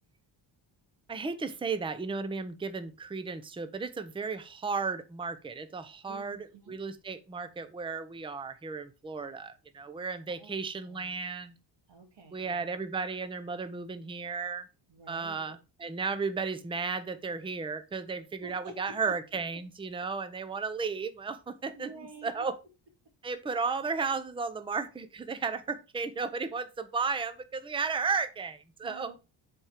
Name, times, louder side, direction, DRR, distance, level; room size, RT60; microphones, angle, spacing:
voice 1, 1.1-11.5 12.3-14.7 15.1-21.9 22.2-22.6 23.2-29.1, right 4 dB, 10° right, 11 dB, 0.6 m, -34 dB
voice 2, 6.1-6.8 10.3-10.6 10.8-11.1 11.9-12.8 14.9-15.6 18.4-19.2 20.0-20.1 21.7-22.4 28.8-29.2, right 3 dB, 65° right, 4 dB, 2.2 m, -49 dB
7.7 x 4.4 x 4.9 m, 0.31 s
wide cardioid pair, 145°, 45 cm